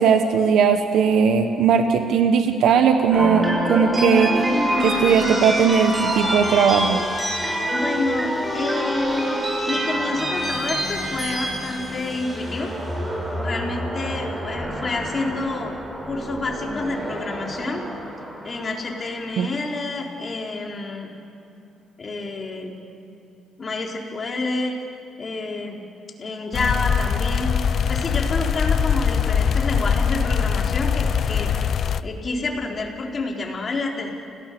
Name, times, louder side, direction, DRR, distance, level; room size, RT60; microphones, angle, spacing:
voice 1, 0.0-4.5 4.8-7.0 19.4-19.5, right 6 dB, 80° right, 7 dB, 1.2 m, -18 dB
sound 1, 3.1-19.3, equal, 20° right, 5.3 m, -26 dB
voice 2, 7.7-12.7 13.4-15.8 16.1-17.8 18.4-21.1 22.0-22.7 23.6-24.7 25.2-25.8 26.2-27.5 27.9-31.5 32.0-34.1, left 3 dB, 40° left, 0 dB, 4.1 m, -28 dB
sound 2, 26.5-32.0, left 7 dB, 60° left, 0.7 m, -22 dB
30.0 x 18.0 x 6.9 m, 2.7 s
cardioid pair, 90°, 0 cm